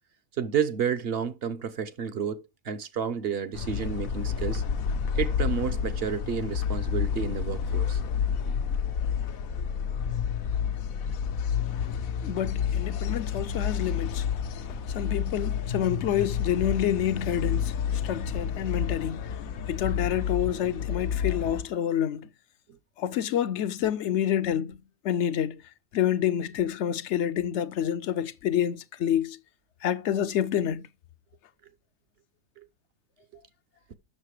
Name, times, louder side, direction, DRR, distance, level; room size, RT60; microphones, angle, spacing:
voice 1, 0.4-4.6 5.2-8.0, right 7 dB, 55° right, 0.9 m, -30 dB
sound 1, 3.5-21.6, left 7 dB, 85° left, 1.2 m, -29 dB
voice 2, 12.2-14.2 14.9-17.7 18.0-19.3 19.7-22.3 23.0-24.8 25.0-25.6 25.9-29.4 29.8-30.9, left 10 dB, 65° left, 0.8 m, -28 dB
7.5 x 6.5 x 4.8 m
omnidirectional pair, 1.4 m